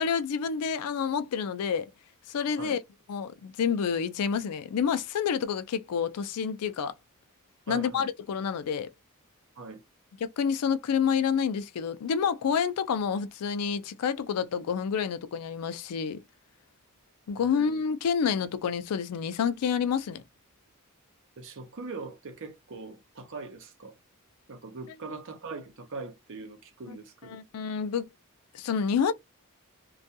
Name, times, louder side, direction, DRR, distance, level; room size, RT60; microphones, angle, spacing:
voice 1, 0.0-1.9 2.3-2.8 3.1-6.9 7.7-8.9 10.2-16.2 17.3-20.2 25.1-25.2 26.9-27.0 27.2-28.1 28.5-29.1, left 7 dB, 90° left, 0.4 m, -28 dB
voice 2, 7.7-8.1 9.6-9.8 17.4-17.8 21.4-24.0 24.5-27.4, right 3 dB, 60° right, 0.6 m, -41 dB
2.3 x 2.2 x 2.6 m
head